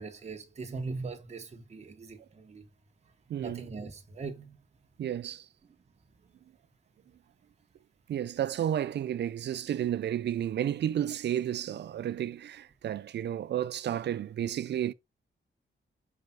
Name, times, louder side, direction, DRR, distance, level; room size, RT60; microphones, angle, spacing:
voice 1, 0.0-2.6 3.4-4.6, right 4 dB, 35° right, 1.3 m, -40 dB
voice 2, 3.3-3.7 5.0-5.5 8.1-14.9, right 10 dB, 60° right, 0.4 m, -32 dB
6.0 x 4.9 x 3.9 m
wide cardioid pair, 170°, 20 cm